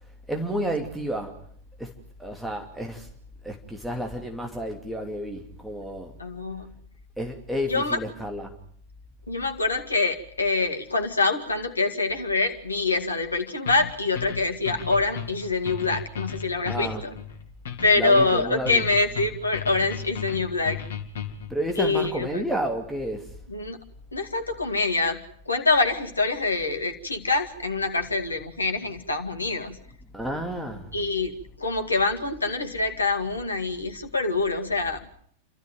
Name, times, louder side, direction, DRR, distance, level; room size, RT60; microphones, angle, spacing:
voice 1, 0.3-1.4 1.8-1.9 2.2-3.1 3.4-6.2 7.2-8.6 16.7-17.0 17.9-18.8 21.5-23.3 30.1-31.0, right 1 dB, 5° right, 2.8 m, -31 dB
voice 2, 6.2-6.8 7.7-8.0 9.3-17.1 17.8-20.8 21.8-22.4 23.5-23.8 24.1-29.8 30.9-31.3 31.6-35.1, left 3 dB, 80° left, 2.1 m, -25 dB
sound 1, 13.7-21.5, left 8 dB, 60° left, 2.4 m, -35 dB
29.5 x 13.5 x 9.3 m
figure-of-eight pair, 90°, 0 cm